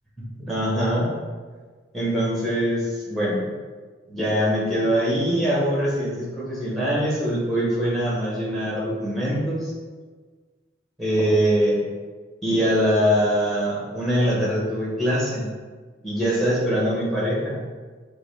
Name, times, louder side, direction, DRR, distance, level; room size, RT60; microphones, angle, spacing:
voice 1, 0.2-1.2 1.9-3.4 4.1-9.7 11.0-11.8 12.4-15.5 16.0-17.6, equal, ahead, -6 dB, 1.1 m, -23 dB
5.8 x 2.2 x 3.3 m, 1.4 s
head